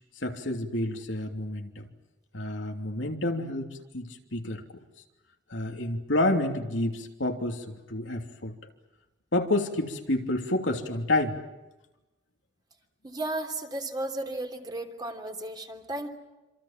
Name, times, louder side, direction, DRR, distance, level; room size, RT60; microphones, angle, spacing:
voice 1, 0.2-1.9 2.3-4.6 5.5-8.5 9.3-11.4, left 1 dB, 80° left, 3 dB, 3.1 m, -29 dB
voice 2, 13.0-16.1, right 2 dB, 20° right, 4 dB, 3.2 m, -34 dB
27.5 x 26.5 x 7.5 m, 1.0 s
head